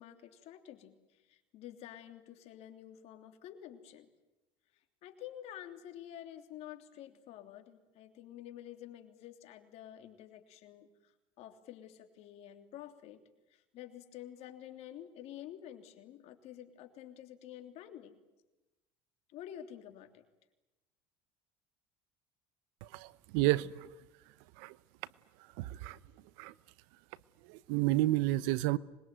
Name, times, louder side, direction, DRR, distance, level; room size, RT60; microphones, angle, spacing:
voice 1, 0.0-4.1 5.0-13.2 13.5-18.2 19.3-20.2, left 11 dB, 65° left, 3.3 m, -50 dB
voice 2, 22.9-23.9 24.6-24.7 25.6-26.0 26.4-26.5 27.5-28.8, right 17 dB, 80° right, 0.9 m, -30 dB
25.5 x 21.5 x 9.3 m
supercardioid pair, 100°, 12 cm